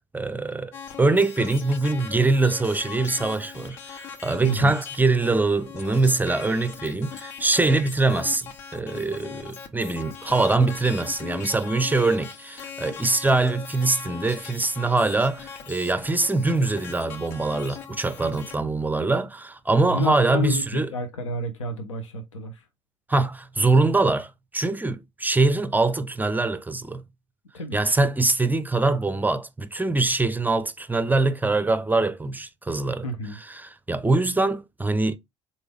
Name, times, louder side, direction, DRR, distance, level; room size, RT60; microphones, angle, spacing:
voice 1, 0.1-20.9 23.1-27.0 27.7-33.1 33.5-35.2, right 3 dB, 10° right, 0.5 m, -23 dB
sound 1, 0.7-18.6, left 7 dB, 65° left, 0.9 m, -40 dB
voice 2, 4.4-4.7 19.9-22.6 27.5-28.0 33.0-33.4, equal, 90° left, 0.6 m, -31 dB
4.0 x 3.4 x 3.4 m
hypercardioid pair, 55°, 16 cm